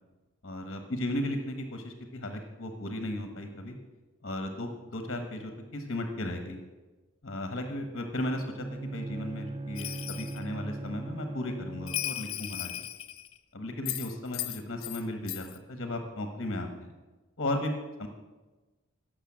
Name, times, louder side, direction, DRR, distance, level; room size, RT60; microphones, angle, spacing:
voice 1, 0.4-3.7 4.2-6.6 7.2-12.7 13.5-16.9 17.4-17.7 18.0-18.1, left 1 dB, 45° left, 5 dB, 1.4 m, -35 dB
Bowed string instrument, 8.3-12.4, right 2 dB, 25° right, 0.3 m, -39 dB
Bell, 9.8-10.4 11.9-13.4 13.9-15.0 15.3-15.6, left 14 dB, 75° left, 0.9 m, -36 dB
17.0 x 6.6 x 7.5 m, 1.2 s
head